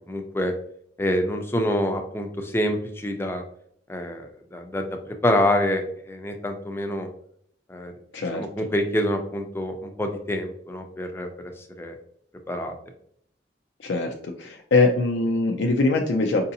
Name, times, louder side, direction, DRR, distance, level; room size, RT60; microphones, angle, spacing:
voice 1, 0.1-0.5 1.0-3.4 3.9-7.1 7.7-7.9 8.3-11.3 11.8-11.9 12.5-12.7, left 1 dB, 15° left, 4 dB, 0.5 m, -26 dB
voice 2, 8.1-8.5 13.8-16.5, left 3 dB, 90° left, 2 dB, 0.5 m, -22 dB
4.7 x 2.6 x 2.7 m, 0.65 s
head